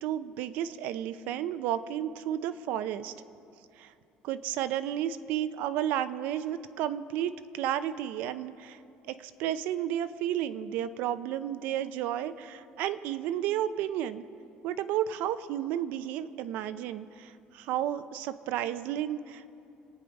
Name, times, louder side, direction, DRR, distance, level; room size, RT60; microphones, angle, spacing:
voice 1, 0.0-3.1 3.8-3.9 4.2-8.8 9.1-14.2 14.6-19.5, right 11 dB, 70° right, 12 dB, 0.7 m, -32 dB
28.0 x 9.3 x 5.3 m, 2.6 s
cardioid pair, 180°, 3 cm